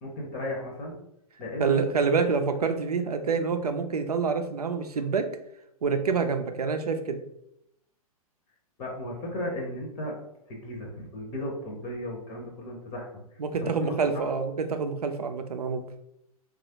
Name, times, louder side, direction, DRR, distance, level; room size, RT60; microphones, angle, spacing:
voice 1, 0.0-1.0 1.4-1.8 8.8-10.1 10.5-14.3, left 1 dB, 30° left, -1 dB, 0.8 m, -35 dB
voice 2, 1.6-5.3 5.8-7.2 13.4-15.8, right 5 dB, 85° right, 7 dB, 0.4 m, -27 dB
3.0 x 2.4 x 2.8 m, 0.78 s
figure-of-eight pair, 110°, 19 cm